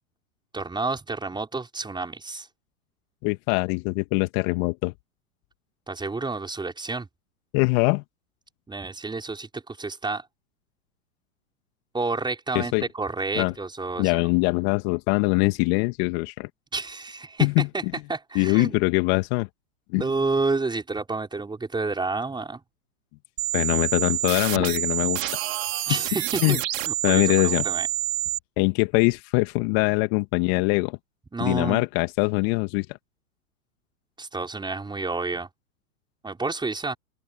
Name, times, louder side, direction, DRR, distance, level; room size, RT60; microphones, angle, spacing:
voice 1, 0.5-2.5 5.9-7.1 8.7-10.3 11.9-14.2 16.7-17.5 17.7-17.8 18.1-18.8 19.9-22.6 25.9-26.6 26.9-27.9 31.3-31.8 34.2-35.5 36.2-37.0, right 3 dB, 10° right, 5.6 m, -30 dB
voice 2, 3.2-4.9 7.5-8.0 12.6-12.8 13.4-13.5 14.0-16.5 17.4-17.9 18.4-19.5 19.9-20.0 23.5-25.3 26.4-26.6 27.0-27.6 28.6-31.0 31.4-32.9, left 30 dB, 45° left, 2.1 m, -23 dB
sound 1, 23.4-28.4, right 15 dB, 65° right, 2.7 m, -27 dB
hypercardioid pair, 105°, 43 cm